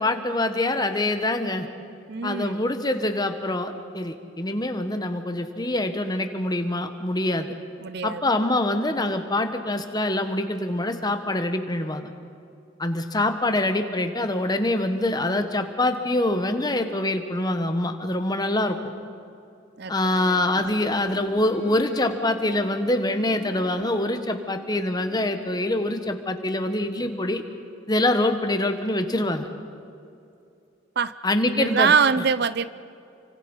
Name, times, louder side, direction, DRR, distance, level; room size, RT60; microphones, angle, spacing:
voice 1, 0.0-1.7 2.2-7.6 8.0-12.1 12.8-18.8 19.9-27.4 27.9-29.5 31.2-31.9, left 1 dB, 20° left, 7 dB, 1.4 m, -25 dB
voice 2, 2.1-2.7 7.8-8.2 19.8-20.7 31.0-31.1 31.5-32.7, right 6 dB, 55° right, 15 dB, 0.5 m, -24 dB
Bowed string instrument, 20.0-25.5, equal, 10° right, 4.7 m, -48 dB
29.5 x 25.0 x 5.6 m, 2.6 s
head